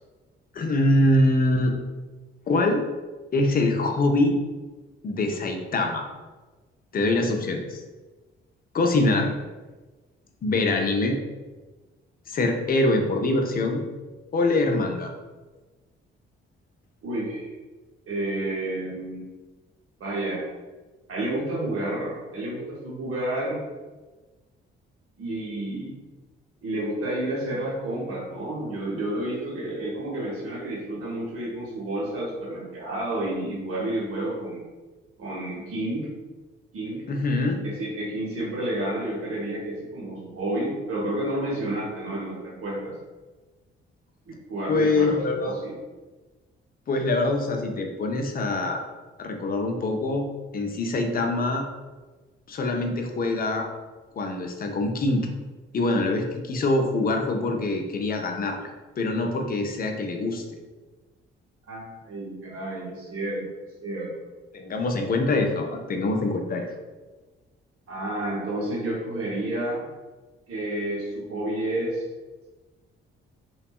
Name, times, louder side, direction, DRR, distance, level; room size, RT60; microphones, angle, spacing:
voice 1, 0.5-1.8 2.5-2.8 3.3-4.4 5.0-6.0 6.9-7.8 8.7-9.3 10.4-11.2 12.3-13.8 14.3-15.1 37.1-37.6 44.7-45.6 46.9-48.8 49.2-50.3 50.5-51.7 52.5-53.7 54.2-55.3 55.7-58.7 59.0-60.4 64.5-66.7, left 2 dB, 30° left, 3 dB, 0.4 m, -24 dB
voice 2, 17.0-17.5 18.1-19.2 20.0-20.4 21.1-23.6 25.2-26.0 26.6-34.6 35.2-36.1 36.7-37.0 37.6-42.9 44.5-45.2 45.4-45.8 61.7-63.4 63.8-64.1 67.9-69.9 70.5-72.0, right 1 dB, 50° right, -6 dB, 0.9 m, -30 dB
2.5 x 2.2 x 2.3 m, 1.2 s
figure-of-eight pair, 40°, 29 cm